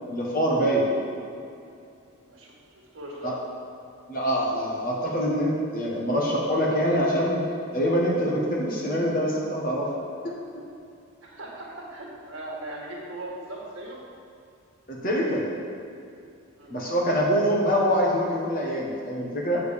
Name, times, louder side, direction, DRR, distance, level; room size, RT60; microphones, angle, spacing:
voice 1, 0.1-0.9 3.2-3.3 4.1-7.4 7.7-9.9 10.2-10.3 14.9-15.5 16.7-19.6, equal, 40° left, -3 dB, 1.5 m, -24 dB
voice 2, 2.3-3.4 11.2-14.0 16.6-17.0, right 1 dB, 65° right, -4 dB, 1.7 m, -39 dB
7.9 x 5.2 x 6.6 m, 2.6 s
head